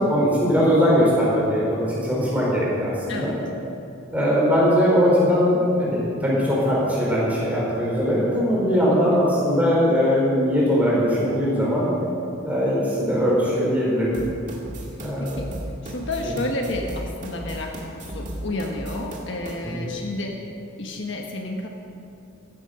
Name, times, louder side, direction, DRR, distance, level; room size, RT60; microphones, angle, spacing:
voice 1, 0.0-3.3 4.1-11.9 12.4-14.2 15.0-15.4 16.2-16.3 19.6-19.8, equal, 5° right, -6 dB, 4.6 m, -20 dB
sound 1, 14.1-19.6, right 1 dB, 35° right, 2.0 m, -35 dB
voice 2, 15.2-15.6 15.8-20.5 20.8-21.7, left 2 dB, 60° left, 2 dB, 1.3 m, -31 dB
15.5 x 13.0 x 5.4 m, 2.7 s
head